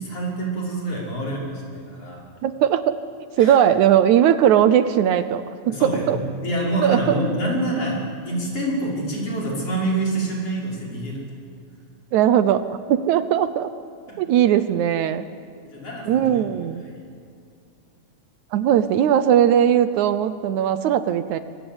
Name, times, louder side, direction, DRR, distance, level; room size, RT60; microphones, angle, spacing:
voice 1, 0.0-2.3 3.4-3.6 5.7-11.2 14.1-14.2 15.6-16.4 16.8-17.1, right 1 dB, 50° left, -4 dB, 6.7 m, -27 dB
voice 2, 2.4-3.0 3.4-6.2 6.8-7.0 12.1-13.7 14.2-15.3 16.1-16.8 18.5-21.4, right 10 dB, 75° right, 12 dB, 2.1 m, -19 dB
25.0 x 24.5 x 8.0 m, 2.3 s
omnidirectional pair, 3.6 m